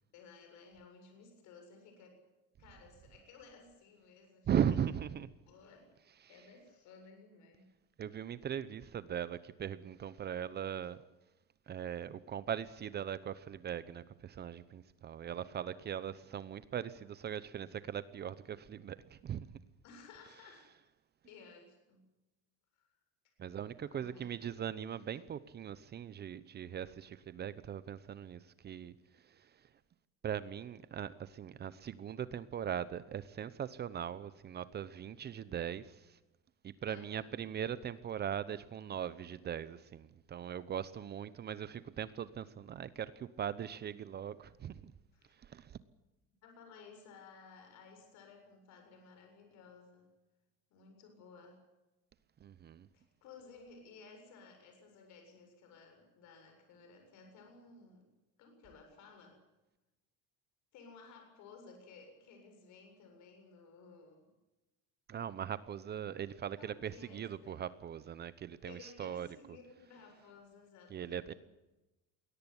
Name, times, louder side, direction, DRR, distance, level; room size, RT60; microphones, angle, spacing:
voice 1, 0.1-2.2 2.6-4.5 5.5-5.9 6.3-7.7 19.8-20.7 21.2-22.1 22.7-22.9 23.9-24.4 36.9-37.3 45.1-45.3 46.4-50.1 50.7-51.6 52.9-58.1 58.4-59.4 60.7-64.2 66.1-67.6 68.6-71.4, left 4 dB, 65° left, 7.6 m, -57 dB
voice 2, 4.5-5.3 6.2-6.3 8.0-11.0 11.7-19.6 23.4-29.7 30.2-36.2 36.6-44.9 45.3-45.8 52.4-52.9 65.1-69.6 70.9-71.3, right 9 dB, 30° right, 0.9 m, -40 dB
21.5 x 18.0 x 9.9 m
cardioid pair, 150°, 31 cm